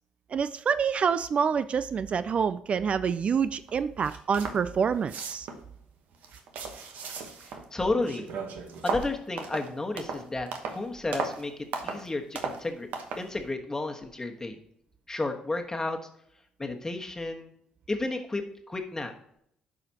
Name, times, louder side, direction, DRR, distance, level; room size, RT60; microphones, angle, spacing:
voice 1, 0.3-5.5, right 6 dB, 45° right, 14 dB, 0.3 m, -27 dB
sound 1, 3.7-3.8 4.0-4.6 4.9-5.7 6.1-7.7 8.0-10.8 11.1-11.4 11.7-12.1 12.4-12.6 12.9-13.3, right 5 dB, 70° right, 1.1 m, -36 dB
voice 2, 7.7-8.2 8.8-11.5 11.8-12.9 13.2-14.6 15.1-16.0 16.6-17.5 17.9-18.4 18.7-19.1, left 2 dB, 20° left, 4 dB, 1.3 m, -32 dB
11.5 x 4.9 x 2.8 m, 0.71 s
supercardioid pair, 70°, 3 cm